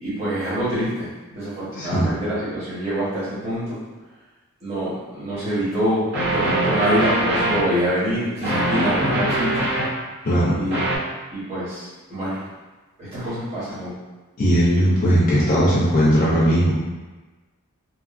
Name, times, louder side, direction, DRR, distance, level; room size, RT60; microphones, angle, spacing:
voice 1, 0.0-3.8 4.6-9.7 10.5-10.8 11.3-12.4 13.0-14.0, equal, 30° right, -12 dB, 1.1 m, -25 dB
voice 2, 1.8-2.1 10.2-10.5 14.4-16.7, equal, 40° left, -7 dB, 0.5 m, -18 dB
sound 1, 5.3-5.4 6.1-7.6 8.4-9.9 10.7-11.0, right 1 dB, 50° right, 0.7 m, -22 dB
3.0 x 2.4 x 2.4 m, 1.2 s
head